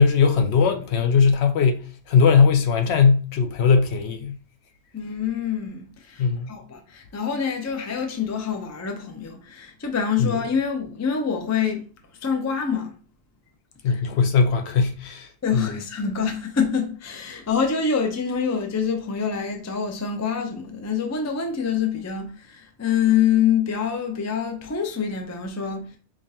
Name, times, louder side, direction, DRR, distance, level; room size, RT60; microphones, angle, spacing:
voice 1, 0.0-4.3 6.2-6.5 10.2-10.3 13.8-15.3 15.5-15.8, left 5 dB, 70° left, 0.9 m, -19 dB
voice 2, 4.9-11.8 12.2-12.9 13.9-14.0 15.4-25.8, left 7 dB, 25° left, 0.3 m, -26 dB
5.0 x 2.4 x 2.7 m
omnidirectional pair, 1.2 m